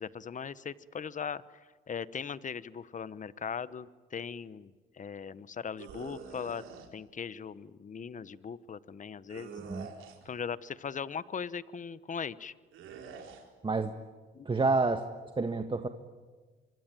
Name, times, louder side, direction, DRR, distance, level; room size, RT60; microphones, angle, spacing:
voice 1, 0.0-6.6 6.9-9.5 10.2-12.5 14.3-14.5, left 6 dB, 40° left, 16 dB, 1.1 m, -39 dB
sound 1, 5.8-6.9 9.3-10.3 12.7-13.4, right 5 dB, 85° right, 4.4 m, -46 dB
voice 2, 13.6-13.9 14.4-15.0 15.4-15.9, right 3 dB, 25° right, 7 dB, 1.5 m, -28 dB
25.5 x 25.0 x 9.2 m, 1.4 s
cardioid pair, 90°, 20 cm